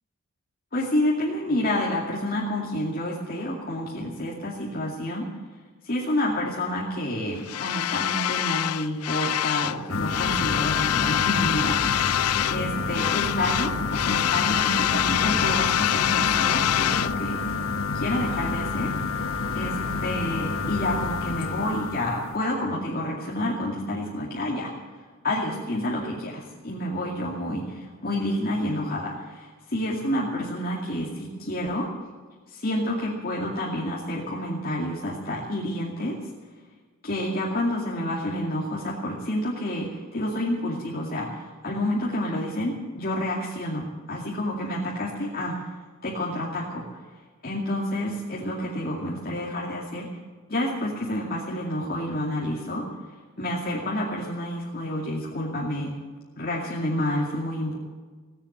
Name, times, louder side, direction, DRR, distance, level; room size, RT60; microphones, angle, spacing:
voice 1, 0.7-5.3 5.8-17.4 17.9-18.9 19.5-24.7 25.2-31.9 32.5-36.2 37.0-45.5 46.0-47.0 47.4-50.1 50.5-52.8 53.4-55.9 56.4-57.8, left 1 dB, 45° left, -4 dB, 2.5 m, -29 dB
sound 1, 7.5-9.8 10.1-12.6 12.9-17.1, left 12 dB, 90° left, 0.4 m, -25 dB
sound 2, 9.9-22.4, left 4 dB, 65° left, 1.0 m, -29 dB
17.5 x 10.0 x 8.0 m, 1.5 s
head